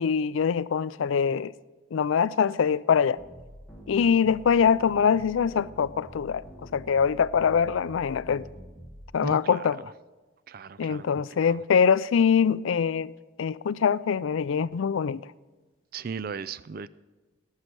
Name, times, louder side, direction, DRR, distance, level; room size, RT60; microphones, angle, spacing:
voice 1, 0.0-1.5 1.9-3.2 3.9-6.4 6.7-8.5 9.1-9.8 10.8-13.1 13.4-15.2, left 6 dB, 75° left, 0.4 m, -23 dB
sound 1, 3.2-9.1, equal, 5° left, 1.5 m, -47 dB
voice 2, 9.2-9.6 10.5-11.1 11.5-11.6 15.9-16.9, right 5 dB, 45° right, 0.4 m, -36 dB
18.0 x 6.6 x 6.1 m
head